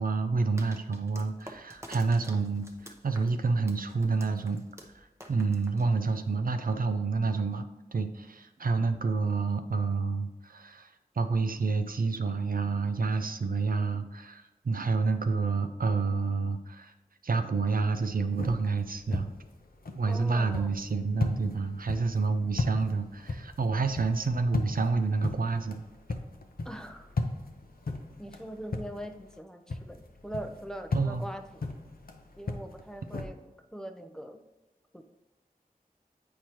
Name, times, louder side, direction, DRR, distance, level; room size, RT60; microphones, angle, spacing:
voice 1, 0.0-4.6 4.9-7.6 7.9-10.9 11.2-16.9 17.2-19.3 20.0-25.8 30.9-31.3, right 4 dB, 65° right, 8 dB, 0.4 m, -29 dB
sound 1, 0.6-6.3, equal, 15° right, 0.9 m, -49 dB
sound 2, 18.0-29.4 29.7-33.3, left 3 dB, 70° left, 0.7 m, -37 dB
voice 2, 20.1-20.8 26.6-27.1 28.2-31.6 32.4-33.4 33.7-34.4 34.9-35.1, right 1 dB, 5° left, 6 dB, 0.6 m, -42 dB
8.2 x 4.6 x 2.9 m, 1.1 s
wide cardioid pair, 45°, 16 cm